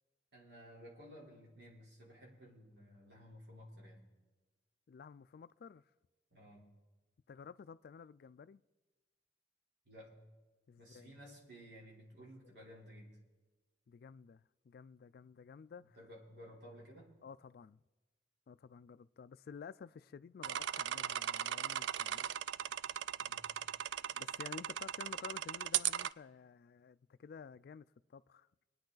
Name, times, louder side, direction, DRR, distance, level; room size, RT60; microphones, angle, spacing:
voice 1, 0.3-4.1 6.3-6.7 9.9-10.1 10.8-13.1 15.8-17.1 23.2-23.5, equal, 70° right, 3.6 m, -55 dB
voice 2, 4.9-5.9 7.3-8.6 10.7-11.2 12.4-12.6 13.9-16.0 17.2-17.8 18.5-22.3 24.2-28.5, left 6 dB, 60° left, 0.3 m, -53 dB
sound 1, 20.4-26.1, right 10 dB, 85° right, 0.3 m, -38 dB
24.5 x 9.5 x 3.9 m
head